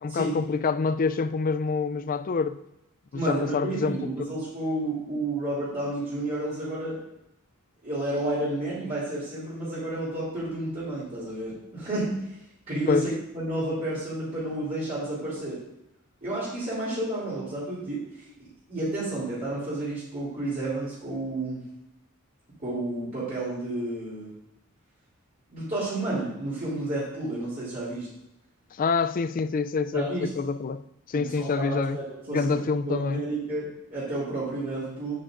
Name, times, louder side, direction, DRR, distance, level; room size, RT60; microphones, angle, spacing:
voice 1, 0.0-2.6 3.1-4.3 12.9-13.1 28.7-30.8 31.1-32.0 32.3-33.2, left 5 dB, 40° left, 0.4 m, -27 dB
voice 2, 3.1-7.0 7.8-12.2 12.7-15.6 16.2-18.0 18.7-21.6 22.6-24.3 25.5-28.1 29.9-30.3 31.1-35.2, right 2 dB, 35° right, 3.2 m, -31 dB
8.8 x 8.7 x 2.5 m
head